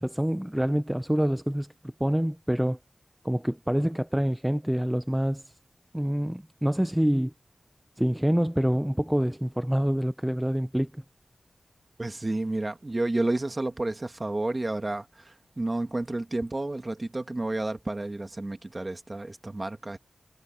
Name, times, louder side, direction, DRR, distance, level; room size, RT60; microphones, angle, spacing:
voice 1, 0.0-2.8 3.2-5.5 5.9-7.3 8.0-11.0, equal, 5° right, 0.5 m, -26 dB
voice 2, 12.0-20.0, right 2 dB, 30° right, 2.0 m, -31 dB
wide cardioid pair, 75°, 0 cm